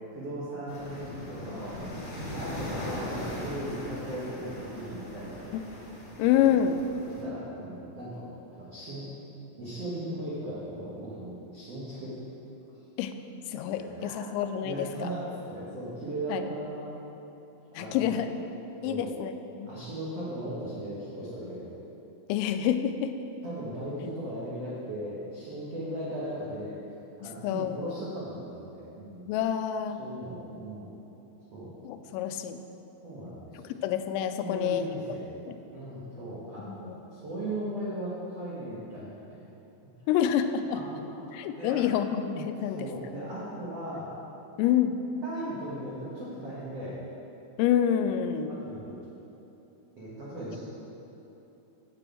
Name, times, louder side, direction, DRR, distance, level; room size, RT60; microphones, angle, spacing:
voice 1, 0.1-1.8 2.3-5.5 7.0-8.2 8.5-9.1 9.6-12.1 13.7-14.3 14.6-16.9 17.8-18.1 18.8-19.1 19.6-21.7 23.4-26.7 27.2-29.2 30.0-30.9 31.5-31.7 33.0-33.6 34.4-35.3 35.7-39.2 40.7-41.8 42.7-44.1 45.2-47.0 48.5-49.0 50.0-50.6, right 1 dB, 80° right, -9 dB, 1.4 m, -37 dB
sound 1, 0.7-7.2, left 1 dB, 45° left, 1.8 m, -39 dB
voice 2, 6.2-6.8 13.0-13.1 13.5-15.1 16.3-16.5 17.8-18.4 18.8-19.3 19.6-19.7 22.3-23.1 27.2-28.0 29.3-30.0 31.8-32.6 33.5-35.2 35.4-35.6 36.7-37.0 40.1-40.8 41.3-42.9 44.6-45.0 47.6-48.5, left 9 dB, 90° left, 9 dB, 3.2 m, -27 dB
8.8 x 6.8 x 7.5 m, 3.0 s
omnidirectional pair, 5.8 m